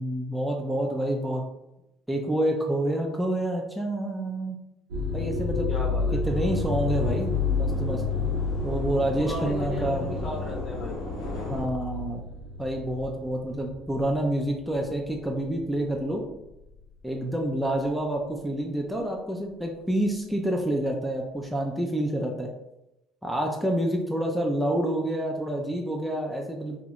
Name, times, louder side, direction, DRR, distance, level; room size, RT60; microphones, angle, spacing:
voice 1, 0.0-1.4 2.1-4.6 5.1-5.7 6.2-8.0 8.6-10.1 11.5-12.2 12.6-16.2 17.0-22.5 23.2-26.8, right 1 dB, 5° right, 0 dB, 0.4 m, -28 dB
sound 1, 4.9-14.3 14.7-15.1 15.8-16.1, left 4 dB, 80° right, 0.5 m, -30 dB
voice 2, 5.7-6.2 9.2-11.0, left 1 dB, 45° left, -3 dB, 0.9 m, -35 dB
sound 2, 6.2-11.6, left 1 dB, 75° left, 1.0 m, -37 dB
2.3 x 2.0 x 2.8 m, 0.89 s
hypercardioid pair, 60°, 0 cm